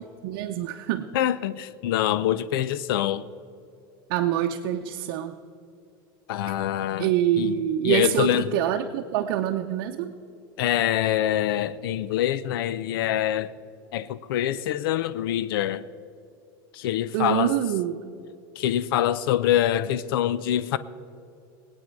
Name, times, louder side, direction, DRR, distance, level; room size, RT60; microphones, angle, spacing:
voice 1, 0.2-1.1 4.1-5.4 7.0-10.1 17.1-18.0, right 11 dB, 65° right, 0.8 m, -25 dB
voice 2, 1.1-3.2 6.3-7.1 7.4-7.6 7.8-8.5 10.6-13.5 13.9-15.8 16.7-17.5 18.6-20.8, left 12 dB, 85° left, 0.5 m, -25 dB
21.5 x 8.9 x 4.6 m
supercardioid pair, 140°, 12 cm